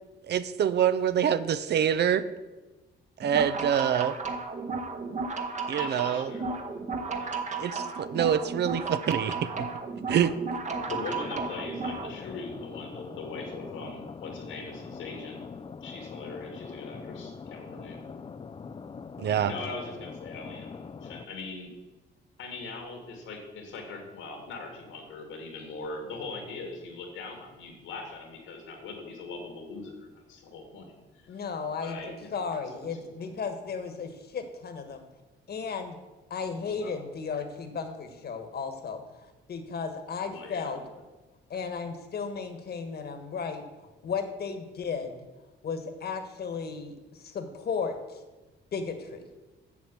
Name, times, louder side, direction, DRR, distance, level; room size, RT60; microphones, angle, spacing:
voice 1, 0.3-2.2 3.2-4.1 5.7-6.3 7.6-9.7 10.1-10.3 19.2-19.5, right 9 dB, 60° right, 13 dB, 0.6 m, -26 dB
sound 1, 3.2-12.1, right 4 dB, 35° right, 1.2 m, -34 dB
voice 2, 5.8-7.4 10.9-15.4 15.8-18.2 19.5-21.7 22.4-31.4 31.8-32.4 32.7-33.4 36.7-37.1 40.3-40.9, left 3 dB, 90° left, 2 dB, 2.5 m, -41 dB
sound 2, 10.7-21.2, left 5 dB, 25° left, 0.4 m, -43 dB
voice 3, 31.3-35.0 35.5-36.0 36.3-40.8 41.5-43.6 44.0-45.2 45.6-48.2 48.7-49.2, left 5 dB, 55° left, 7 dB, 1.5 m, -35 dB
7.4 x 7.1 x 7.5 m, 1.2 s
cardioid pair, 90°, 20 cm